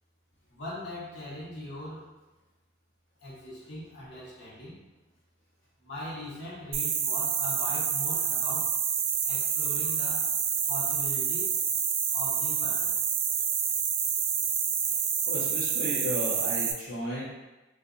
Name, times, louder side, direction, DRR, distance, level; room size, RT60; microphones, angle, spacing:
voice 1, 0.5-2.1 3.2-4.7 5.8-8.7 9.2-10.3 10.7-11.5 12.1-12.9, left 1 dB, 60° left, -8 dB, 1.0 m, -40 dB
sound 1, 6.7-16.7, right 7 dB, 80° right, 0.3 m, -28 dB
voice 2, 15.3-17.2, left 1 dB, 80° left, -9 dB, 0.6 m, -34 dB
2.6 x 2.4 x 2.4 m, 1.1 s
head